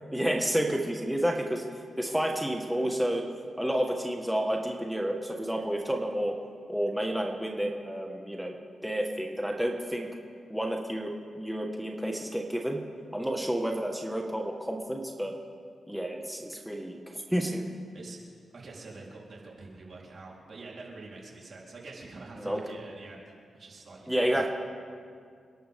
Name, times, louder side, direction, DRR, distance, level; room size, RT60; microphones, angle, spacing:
voice 1, 0.1-1.6 2.0-3.2 3.6-6.3 6.7-8.6 8.8-10.1 10.5-12.8 13.1-15.3 15.9-17.6 22.4-22.6 24.1-24.5, right 1 dB, 5° right, 1 dB, 1.7 m, -30 dB
voice 2, 18.5-24.4, right 3 dB, 60° right, -3 dB, 4.0 m, -46 dB
28.5 x 11.5 x 3.7 m, 2.2 s
cardioid pair, 55°, 0 cm